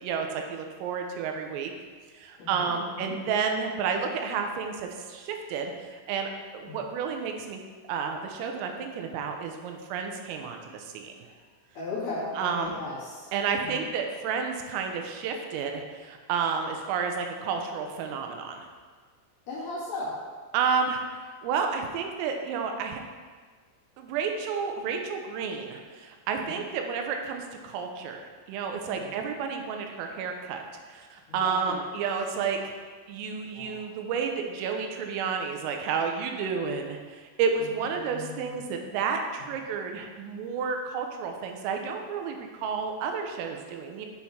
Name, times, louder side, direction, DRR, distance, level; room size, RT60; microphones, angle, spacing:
voice 1, 0.0-1.7 2.1-7.6 7.9-11.1 12.4-12.8 13.3-18.7 20.5-21.0 21.4-23.0 24.0-30.6 30.9-32.6 33.1-44.1, right 6 dB, 90° right, 4 dB, 3.4 m, -31 dB
voice 2, 2.4-3.1 6.6-6.8 11.7-13.3 13.6-13.9 19.5-20.1 26.4-26.6 28.9-29.1 31.3-31.8 33.5-33.8 37.6-38.6, left 2 dB, 45° left, -10 dB, 2.6 m, -37 dB
8.2 x 5.7 x 4.3 m, 1.5 s
omnidirectional pair, 5.8 m